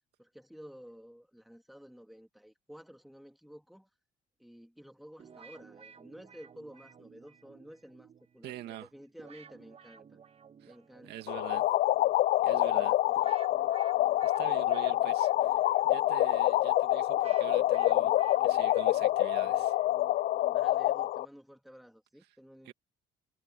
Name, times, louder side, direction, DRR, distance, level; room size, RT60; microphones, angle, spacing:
voice 1, 0.2-3.9 4.4-10.2 10.6-11.3 12.5-13.4 20.4-22.7, equal, ahead, 2.9 m, -52 dB
sound 1, 5.2-21.1, right 7 dB, 35° right, 1.4 m, -56 dB
voice 2, 8.4-8.9 10.6-10.7 11.0-11.6 12.4-12.9 14.2-18.1 18.4-19.8 22.6-22.7, right 14 dB, 75° right, 2.2 m, -45 dB
sound 2, 11.3-21.3, left 14 dB, 60° left, 0.4 m, -27 dB
cardioid pair, 110°, 17 cm